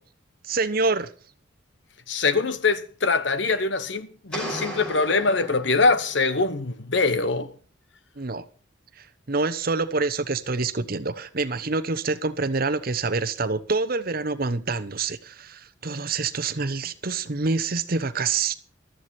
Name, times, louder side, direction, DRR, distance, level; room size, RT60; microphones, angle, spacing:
voice 1, 0.4-1.1 8.2-8.4 9.3-18.5, right 3 dB, 50° right, 1.0 m, -26 dB
voice 2, 2.1-7.5, left 3 dB, 65° left, 1.1 m, -23 dB
sound 1, 4.3-6.2, equal, 5° left, 5.8 m, -35 dB
14.5 x 13.0 x 4.4 m
head